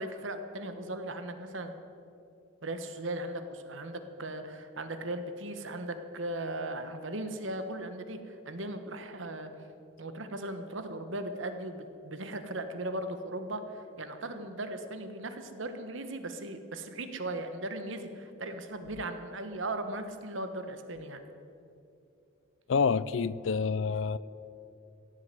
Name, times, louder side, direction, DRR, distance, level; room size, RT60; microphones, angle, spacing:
voice 1, 0.0-1.7 2.6-9.5 10.0-21.2, right 1 dB, 65° right, 8 dB, 1.3 m, -38 dB
voice 2, 22.7-24.2, left 5 dB, 65° left, 18 dB, 0.4 m, -27 dB
16.0 x 7.8 x 9.0 m, 2.7 s
head